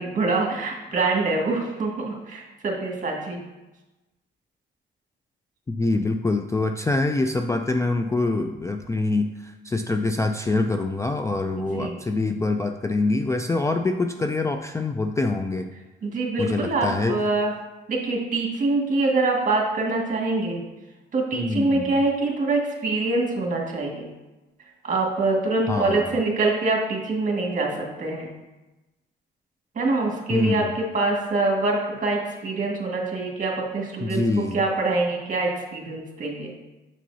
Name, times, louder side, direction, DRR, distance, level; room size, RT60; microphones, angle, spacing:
voice 1, 0.0-3.4 11.6-12.0 16.0-17.5 17.9-20.6 21.1-24.1 24.8-28.3 29.8-36.5, right 3 dB, 40° right, -1 dB, 1.8 m, -25 dB
voice 2, 5.7-15.7 16.4-17.2 21.3-22.0 25.7-26.1 30.3-30.7 34.0-34.6, left 2 dB, 15° left, 6 dB, 0.3 m, -25 dB
6.8 x 6.1 x 2.7 m, 1.1 s
cardioid pair, 90°, 20 cm